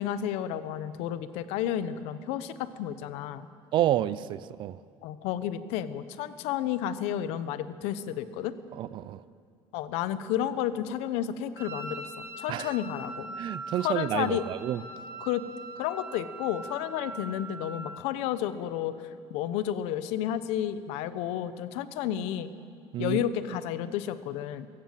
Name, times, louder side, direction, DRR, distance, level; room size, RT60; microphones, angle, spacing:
voice 1, 0.0-3.5 5.0-8.5 9.7-12.0 12.4-13.3 13.8-14.4 15.2-15.5 15.8-18.9 19.3-22.5 23.0-24.7, left 11 dB, 85° left, 13 dB, 1.0 m, -31 dB
voice 2, 3.7-4.8 8.7-9.2 12.5-12.8 13.4-14.8 22.9-23.2, right 12 dB, 50° right, 18 dB, 0.6 m, -29 dB
Wind instrument woodwind instrument, 11.6-18.2, right 2 dB, 25° right, 2.5 m, -42 dB
22.5 x 16.5 x 7.6 m, 2.3 s
cardioid pair, 145°, 10 cm